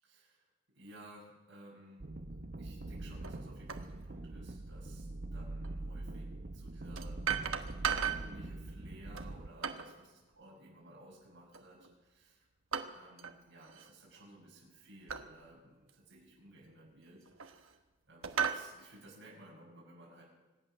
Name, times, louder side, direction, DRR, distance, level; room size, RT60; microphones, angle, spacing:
voice 1, 0.0-0.5 0.7-2.0 2.6-7.6 7.9-12.5 12.9-17.8 18.1-20.2, right 1 dB, 60° right, -6 dB, 6.4 m, -56 dB
sound 1, 2.0-9.5, right 2 dB, 45° right, 0.7 m, -43 dB
sound 2, 3.2-3.4 3.7-3.9 5.6-5.7 7.0-8.3 9.1-10.0 11.5-11.9 12.7-13.4 13.6-13.9 15.1-15.3 15.9-16.0 17.0-17.8 18.2-18.7, right 7 dB, 90° right, 1.1 m, -36 dB
25.0 x 8.9 x 6.4 m, 1.1 s
head